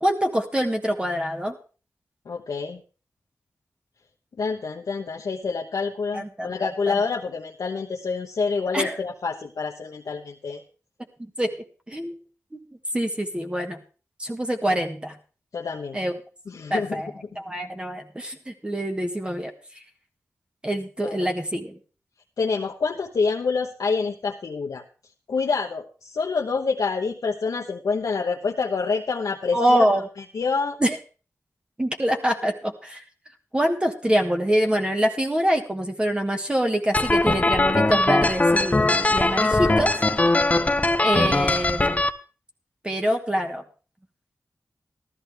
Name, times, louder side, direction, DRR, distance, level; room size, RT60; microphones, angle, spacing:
voice 1, 0.0-1.6 6.1-7.0 8.7-9.0 11.2-11.5 11.9-12.2 12.5-12.6 12.9-13.8 14.2-15.1 15.9-16.1 16.7-17.1 17.3-19.5 20.6-21.8 29.5-30.0 30.8-31.0 31.8-33.0 33.5-39.9 41.0-42.0 42.8-43.6, equal, 15° right, 3 dB, 1.5 m, -25 dB
voice 2, 2.3-2.8 4.4-10.6 15.5-16.0 16.5-17.0 21.0-21.3 22.4-24.8 25.3-29.9 30.3-30.8, left 4 dB, 85° left, 0 dB, 1.0 m, -27 dB
sound 1, 36.9-42.1, left 2 dB, 25° left, 0.7 m, -20 dB
13.5 x 13.5 x 3.4 m, 0.37 s
wide cardioid pair, 100°, 6 cm